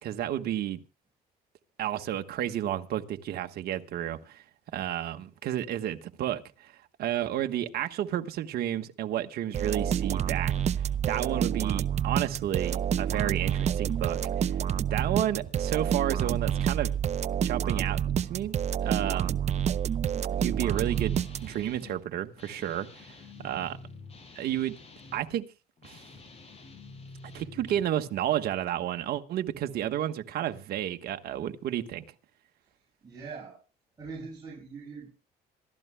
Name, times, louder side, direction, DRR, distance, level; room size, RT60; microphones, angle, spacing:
voice 1, 0.0-0.8 1.8-4.4 4.7-6.7 7.0-10.5 11.1-14.5 14.9-16.9 17.4-18.6 18.8-19.4 20.4-23.0 23.4-23.8 24.3-24.7 25.1-25.4 25.8-26.0 27.2-32.0, right 11 dB, 70° right, 1.3 m, -31 dB
sound 1, 9.5-21.8, right 9 dB, 40° right, 0.6 m, -28 dB
Guitar, 20.7-22.0 22.4-25.3 25.8-27.9, left 3 dB, 35° left, 5.8 m, -48 dB
voice 2, 23.3-23.6 32.7-33.6 34.0-35.2, right 4 dB, 25° right, 6.9 m, -43 dB
27.0 x 14.0 x 2.2 m
cardioid pair, 110°, 17 cm